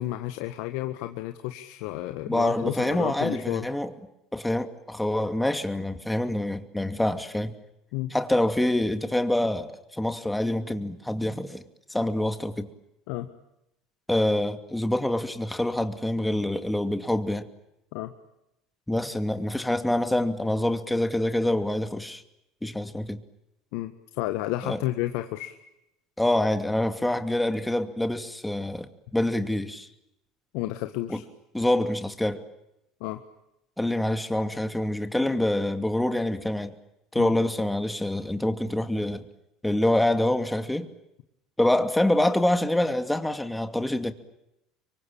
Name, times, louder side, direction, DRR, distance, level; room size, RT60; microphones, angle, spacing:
voice 1, 0.0-3.7 7.9-8.1 13.1-13.3 17.9-18.1 23.7-25.6 30.5-31.2 33.0-33.2 37.2-37.3, left 15 dB, 70° left, 8 dB, 1.6 m, -31 dB
voice 2, 2.3-3.9 4.3-7.5 8.1-11.6 11.9-12.7 14.1-17.5 18.9-22.2 22.6-23.2 24.6-24.8 26.2-29.9 31.1-31.2 31.5-32.5 33.8-36.7 37.1-39.3 39.6-40.9 41.6-44.1, left 1 dB, 5° left, 8 dB, 2.5 m, -26 dB
26.5 x 23.5 x 8.8 m, 0.86 s
hypercardioid pair, 85°, 0 cm